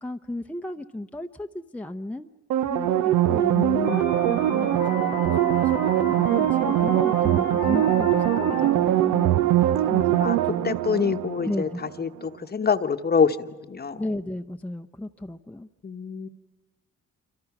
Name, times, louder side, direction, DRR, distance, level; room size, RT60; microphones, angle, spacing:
voice 1, 0.0-2.3 2.6-3.5 3.9-9.4 9.8-10.7 11.4-11.8 14.0-15.7, left 1 dB, 5° left, 5 dB, 0.7 m, -34 dB
sound 1, 2.5-11.9 12.2-12.3, right 13 dB, 85° right, 0.8 m, -22 dB
voice 2, 3.4-4.0 10.2-10.4 10.6-14.0 15.8-16.3, left 6 dB, 30° left, 10 dB, 1.0 m, -26 dB
sound 2, 3.8-8.9, left 10 dB, 85° left, 1.7 m, -37 dB
27.5 x 25.0 x 6.0 m, 1.2 s
cardioid pair, 90°, 30 cm